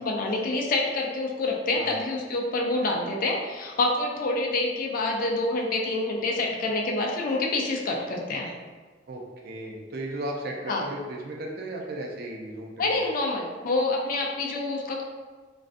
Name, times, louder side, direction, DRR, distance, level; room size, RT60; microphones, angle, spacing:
voice 1, 0.0-8.5 10.7-10.8 12.8-15.0, left 2 dB, 45° left, 0 dB, 0.3 m, -27 dB
voice 2, 9.1-12.7 13.1-13.2, right 1 dB, 55° right, 0 dB, 0.4 m, -35 dB
2.4 x 2.2 x 2.5 m, 1.4 s
head